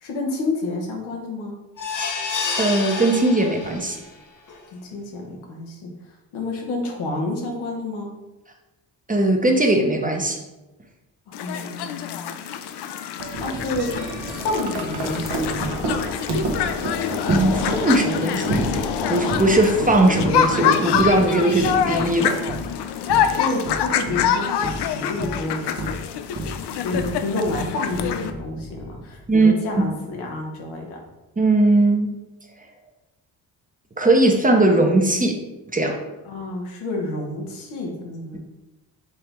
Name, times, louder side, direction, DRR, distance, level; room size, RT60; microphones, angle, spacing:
voice 1, 0.0-1.5 4.7-5.9 6.3-8.1 11.4-12.3 13.4-14.0 14.4-15.7 23.2-25.9 26.7-31.0 36.3-38.4, left 2 dB, 80° left, 0 dB, 1.0 m, -29 dB
sound 1, 1.8-4.0 4.5-4.6 4.9-5.0, left 4 dB, 40° left, 0.8 m, -28 dB
voice 2, 2.6-4.0 9.1-10.4 17.3-18.8 19.1-22.3 29.3-29.5 31.4-32.1 34.0-35.4 35.7-36.0, right 2 dB, 15° right, 2 dB, 0.8 m, -19 dB
sound 2, 11.3-28.3, left 8 dB, 60° left, 0.5 m, -25 dB
Wind chime, 13.2-29.4, right 2 dB, 60° right, 1.0 m, -31 dB
4.7 x 2.8 x 3.4 m, 1.0 s
hypercardioid pair, 40°, 48 cm